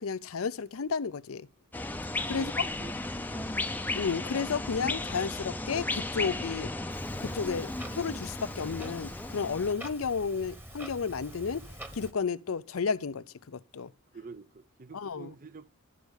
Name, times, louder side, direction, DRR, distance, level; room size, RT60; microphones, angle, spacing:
voice 1, 0.0-1.5 2.3-2.5 3.9-6.7 7.2-11.6 11.9-13.9 14.9-15.3, left 5 dB, 85° left, 0.6 m, -32 dB
sound 1, 1.7-9.7, left 2 dB, 10° left, 0.6 m, -35 dB
voice 2, 2.3-3.0 3.3-3.6 14.1-15.8, right 4 dB, 40° right, 0.5 m, -47 dB
Clock, 6.9-12.1, right 1 dB, 10° right, 1.2 m, -45 dB
12.0 x 4.7 x 8.1 m
head